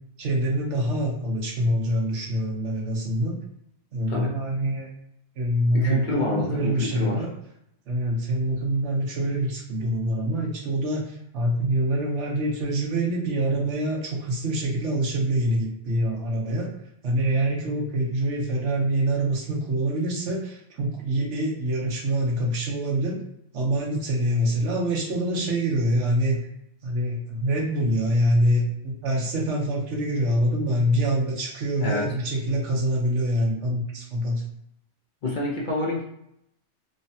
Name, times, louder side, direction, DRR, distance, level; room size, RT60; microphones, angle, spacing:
voice 1, 0.2-3.4 3.9-4.9 5.4-7.3 7.9-16.7 17.0-23.2 23.5-26.4 26.8-34.4, right 1 dB, 85° right, -1 dB, 1.1 m, -25 dB
voice 2, 5.7-7.2 31.8-32.1 35.2-36.0, left 2 dB, 55° left, -2 dB, 0.6 m, -28 dB
3.1 x 2.1 x 2.6 m, 0.78 s
omnidirectional pair, 1.2 m